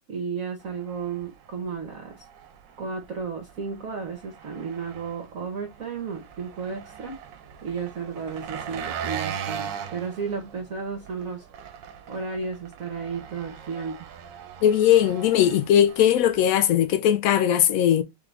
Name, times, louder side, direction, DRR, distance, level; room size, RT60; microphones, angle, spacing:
voice 1, 0.1-2.2 2.8-7.2 7.6-11.4 12.1-14.1, right 5 dB, 55° right, 1.2 m, -33 dB
Engine, 0.6-16.4, right 8 dB, 75° right, 1.3 m, -40 dB
voice 2, 14.6-18.0, left 10 dB, 85° left, 0.7 m, -19 dB
3.7 x 3.6 x 3.2 m
omnidirectional pair, 2.0 m